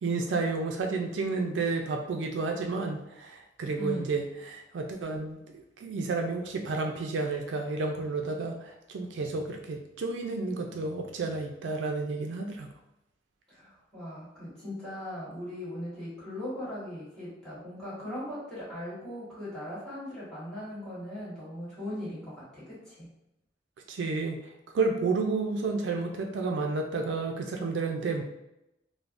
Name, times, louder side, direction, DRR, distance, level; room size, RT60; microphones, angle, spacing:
voice 1, 0.0-12.7 23.9-28.2, right 3 dB, 80° right, 3 dB, 0.4 m, -31 dB
voice 2, 3.8-4.1 13.5-23.1, left 1 dB, 5° left, -11 dB, 1.5 m, -39 dB
3.3 x 2.1 x 2.5 m, 0.88 s
head